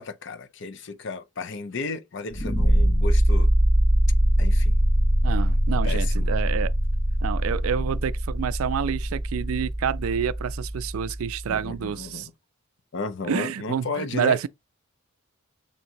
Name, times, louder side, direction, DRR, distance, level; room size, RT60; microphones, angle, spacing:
voice 1, 0.0-3.5 4.4-4.8 5.8-6.3 11.5-12.3 12.9-14.5, left 4 dB, 55° left, 0.6 m, -34 dB
sound 1, 2.3-11.3, right 1 dB, 25° left, 1.3 m, -22 dB
voice 2, 5.2-6.7 7.2-12.3 13.3-14.5, right 7 dB, 75° right, 0.3 m, -28 dB
7.1 x 2.9 x 2.6 m
head